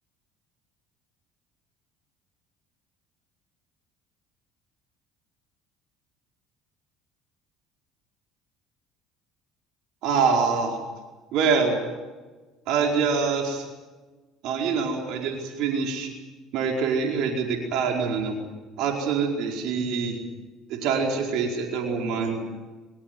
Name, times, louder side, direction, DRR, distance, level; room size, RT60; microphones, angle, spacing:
voice 1, 10.0-10.8 11.3-11.8 12.7-13.6 14.4-16.1 16.5-18.4 18.8-20.2 20.7-22.5, right 5 dB, 70° right, 1 dB, 4.7 m, -25 dB
26.5 x 16.0 x 9.4 m, 1.2 s
supercardioid pair, 105°, 0 cm